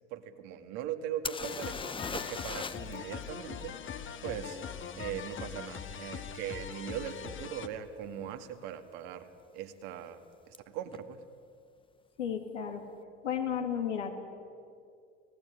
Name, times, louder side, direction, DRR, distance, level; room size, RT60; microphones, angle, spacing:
voice 1, 0.1-1.8 2.1-4.6 5.0-9.3 9.5-10.2 10.5-11.2, right 9 dB, 60° right, 7 dB, 2.4 m, -40 dB
sound 1, 1.2-3.0 3.2-3.3 6.7-6.8 7.5-7.7 7.9-8.5 10.5-10.6 10.9-11.0, left 4 dB, 15° left, 0.9 m, -39 dB
sound 2, 1.4-7.7, left 7 dB, 35° left, 1.7 m, -42 dB
voice 2, 12.2-12.8 13.2-14.2, left 8 dB, 80° left, 3 dB, 2.5 m, -33 dB
29.0 x 18.5 x 9.8 m, 2.4 s
hypercardioid pair, 75°, 36 cm